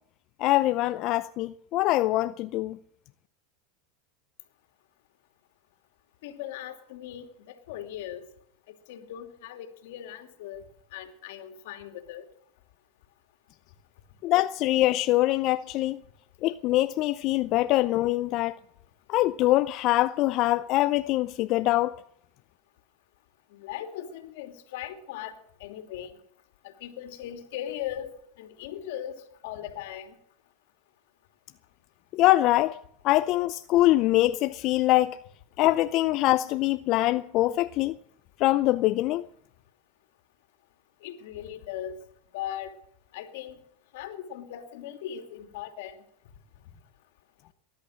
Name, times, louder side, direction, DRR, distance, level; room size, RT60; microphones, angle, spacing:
voice 1, 0.4-2.8 14.2-16.0 16.4-18.6 19.1-21.9 32.1-32.8 33.0-35.2 35.6-38.0 38.4-39.2, left 16 dB, 50° left, 0.5 m, -23 dB
voice 2, 6.2-8.3 8.7-12.3 23.5-26.2 26.6-30.2 41.0-42.8 43.1-43.6 43.9-46.7 47.0-47.1, left 11 dB, 70° left, 2.6 m, -39 dB
19.5 x 11.5 x 6.4 m
hypercardioid pair, 105°, 0 cm